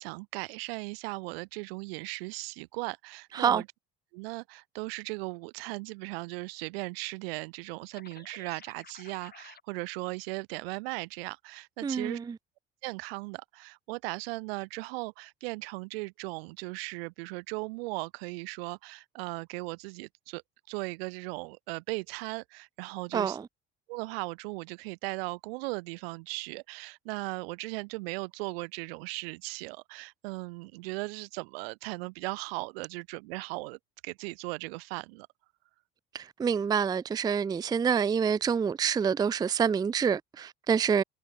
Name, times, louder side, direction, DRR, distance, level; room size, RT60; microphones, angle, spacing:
voice 1, 0.0-3.7 4.1-12.2 12.8-20.4 20.7-23.4 23.9-35.3, right 26 dB, 80° right, 0.8 m, -37 dB
sound 1, 7.9-9.6, left 7 dB, 30° left, 1.4 m, -52 dB
voice 2, 11.8-12.4 23.1-23.4 36.1-41.0, right 7 dB, 15° right, 0.3 m, -27 dB
hypercardioid pair, 60°, 29 cm